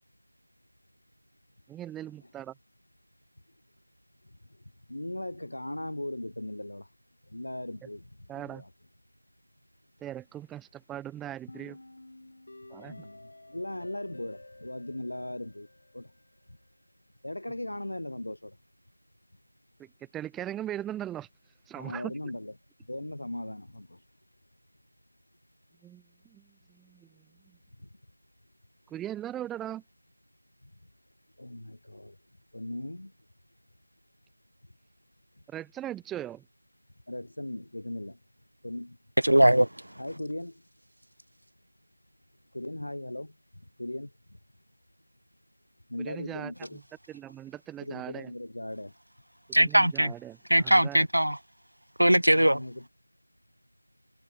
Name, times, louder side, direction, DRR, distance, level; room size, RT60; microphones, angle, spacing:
voice 1, 1.7-2.5 8.3-8.6 10.0-11.8 12.7-13.1 19.8-19.9 20.1-21.3 21.7-22.1 25.8-26.0 26.3-26.4 26.7-27.1 28.9-29.8 35.5-36.4 46.0-46.8 47.1-48.3 49.5-51.0, right 12 dB, 5° right, 0.5 m, -39 dB
voice 2, 4.9-6.9 7.3-8.7 12.8-15.7 15.9-16.1 17.2-18.6 21.7-22.5 22.9-24.0 27.8-27.9 30.6-30.7 31.4-32.2 32.5-33.1 37.1-38.2 38.6-39.0 40.0-40.6 42.5-44.4 45.9-46.8 47.8-48.9 52.3-52.9, left 1 dB, 65° left, 3.3 m, -38 dB
sound 1, 11.5-16.5, left 2 dB, 45° left, 4.3 m, -52 dB
voice 3, 39.2-39.7 49.5-50.1 50.5-51.4 52.0-52.6, right 1 dB, 85° right, 0.4 m, -20 dB
figure-of-eight pair, 175°, 0 cm